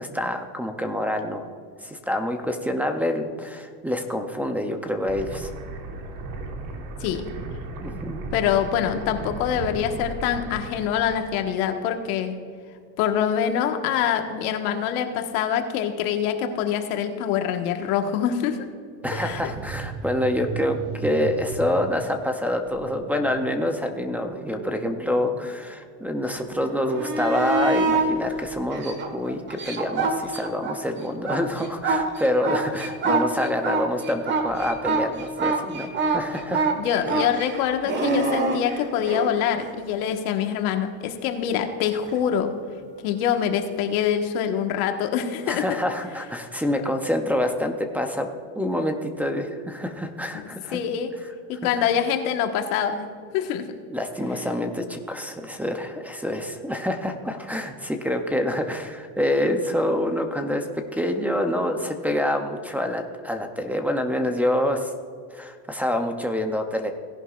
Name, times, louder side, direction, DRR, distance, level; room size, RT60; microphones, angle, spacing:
voice 1, 0.0-1.5 1.8-5.5 7.8-8.2 19.0-36.7 45.5-48.3 48.6-50.8 53.9-60.7 60.9-64.9 65.3-66.9, left 1 dB, 5° right, 2 dB, 0.4 m, -26 dB
sound 1, 5.1-11.5, right 2 dB, 45° right, 1.3 m, -36 dB
voice 2, 8.3-12.4 13.0-18.6 19.1-19.4 36.7-42.5 43.0-45.8 50.3-51.1 51.5-53.1 53.3-53.7, left 8 dB, 75° left, 5 dB, 1.4 m, -25 dB
sound 2, 19.0-22.2 22.5-25.6 26.4-28.4, right 5 dB, 80° right, 1.6 m, -37 dB
sound 3, 26.8-28.1 28.7-30.8 31.1-39.3 42.1-42.2, right 3 dB, 25° right, 1.3 m, -25 dB
17.5 x 11.0 x 2.4 m, 2.2 s
supercardioid pair, 145°, 44 cm